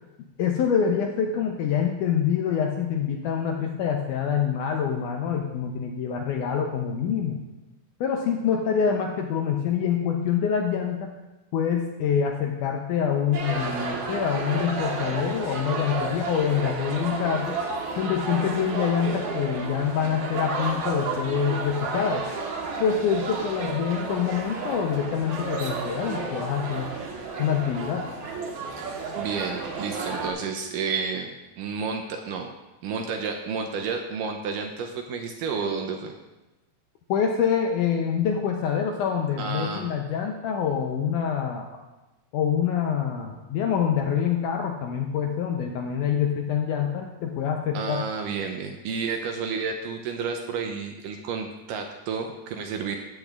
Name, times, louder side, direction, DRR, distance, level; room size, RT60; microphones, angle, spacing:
voice 1, 0.4-7.4 8.0-11.1 11.5-17.6 18.0-22.2 22.8-26.9 27.4-28.1 37.1-41.7 42.3-48.0, left 7 dB, 80° left, 2 dB, 1.8 m, -26 dB
sound 1, 13.3-30.3, right 4 dB, 65° right, 2.3 m, -32 dB
voice 2, 28.7-31.3 31.6-32.5 32.8-36.1 39.4-39.9 47.7-53.0, right 5 dB, 80° right, 4 dB, 2.0 m, -31 dB
15.5 x 7.8 x 2.4 m, 1.1 s
omnidirectional pair, 4.2 m